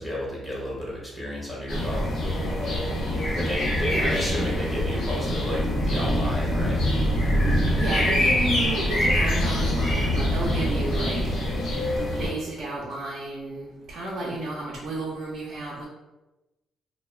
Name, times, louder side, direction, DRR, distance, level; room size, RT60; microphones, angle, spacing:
voice 1, 0.0-2.1 3.3-6.8, equal, 20° left, -5 dB, 0.9 m, -31 dB
sound 1, 1.7-12.3, equal, 65° left, 0.9 m, -24 dB
voice 2, 7.8-11.2 12.0-15.8, right 2 dB, 65° right, -4 dB, 0.5 m, -32 dB
2.2 x 2.1 x 3.2 m, 1.0 s
cardioid pair, 90°, 0 cm